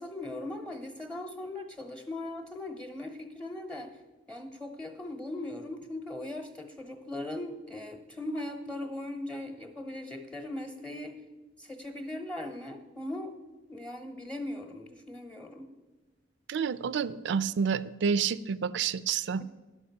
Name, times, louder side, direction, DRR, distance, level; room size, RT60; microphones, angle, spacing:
voice 1, 0.0-4.0 4.3-11.2 11.6-13.3 13.7-15.7, left 1 dB, 5° left, 5 dB, 0.8 m, -39 dB
voice 2, 16.5-19.4, right 6 dB, 70° right, 17 dB, 0.3 m, -29 dB
11.0 x 5.8 x 5.7 m, 1.1 s
head